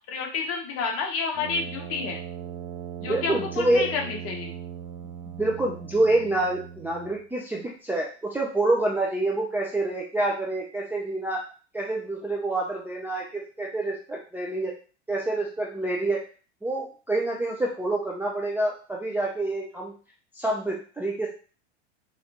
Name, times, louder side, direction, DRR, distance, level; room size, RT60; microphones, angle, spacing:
voice 1, 0.1-2.2 3.0-4.6, left 5 dB, 40° left, 1 dB, 1.2 m, -30 dB
Brass instrument, 1.3-7.2, right 9 dB, 50° right, 0.6 m, -39 dB
voice 2, 3.0-3.8 5.3-11.4 11.7-14.7 15.1-16.2 16.6-19.9 20.3-21.3, right 2 dB, 5° right, -3 dB, 0.5 m, -27 dB
4.0 x 3.2 x 2.9 m, 0.37 s
hypercardioid pair, 110°, 35 cm